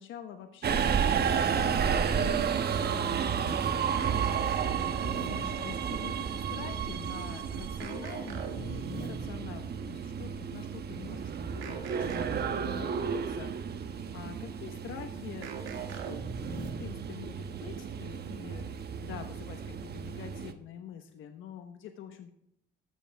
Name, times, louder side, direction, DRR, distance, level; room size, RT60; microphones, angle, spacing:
voice 1, 0.0-16.2 16.5-22.3, left 9 dB, 80° left, 6 dB, 1.2 m, -46 dB
Subway metro underground, 0.6-20.5, right 7 dB, 55° right, 1.1 m, -32 dB
sound 1, 4.0-5.8 7.8-9.5 11.6-13.1 15.4-17.0, right 6 dB, 80° right, 1.8 m, -40 dB
13.5 x 13.0 x 3.5 m, 0.74 s
cardioid pair, 90°, 20 cm